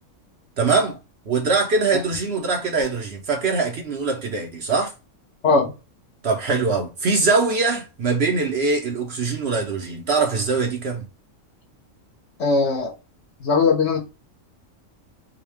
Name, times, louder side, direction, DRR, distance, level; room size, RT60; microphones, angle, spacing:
voice 1, 0.6-1.0 1.3-4.9 6.2-11.1, right 4 dB, 55° right, 0.8 m, -22 dB
voice 2, 12.4-12.9 13.4-14.0, left 4 dB, 55° left, 1.2 m, -19 dB
3.8 x 2.3 x 3.3 m
omnidirectional pair, 1.4 m